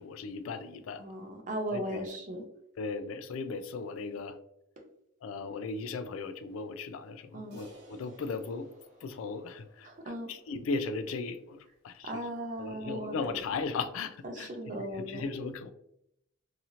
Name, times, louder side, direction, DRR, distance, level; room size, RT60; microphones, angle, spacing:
voice 1, 0.0-1.0 1.7-1.8 2.8-4.4 5.2-8.7 9.0-9.9 10.3-12.2 12.6-15.7, left 4 dB, 80° left, 11 dB, 0.3 m, -37 dB
voice 2, 1.0-2.4 3.9-4.0 7.3-7.6 9.8-10.3 12.0-13.4 14.2-15.3, right 1 dB, 40° right, 3 dB, 0.5 m, -37 dB
Crash cymbal, 7.5-12.1, right 2 dB, 55° right, 1.1 m, -57 dB
2.8 x 2.5 x 2.8 m, 0.78 s
head